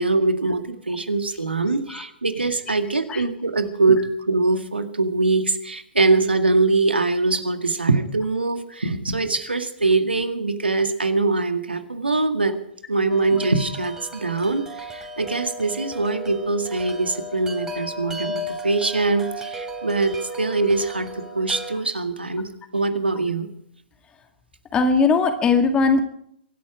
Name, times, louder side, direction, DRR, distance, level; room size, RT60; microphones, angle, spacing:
voice 1, 0.0-12.6 12.9-23.5, right 3 dB, 85° right, 7 dB, 2.0 m, -23 dB
Wind chime, 13.1-21.7, equal, 10° right, 3.2 m, -35 dB
voice 2, 24.7-26.0, left 4 dB, 15° left, 6 dB, 2.0 m, -19 dB
25.0 x 11.5 x 5.0 m, 0.70 s
figure-of-eight pair, 125°, 6 cm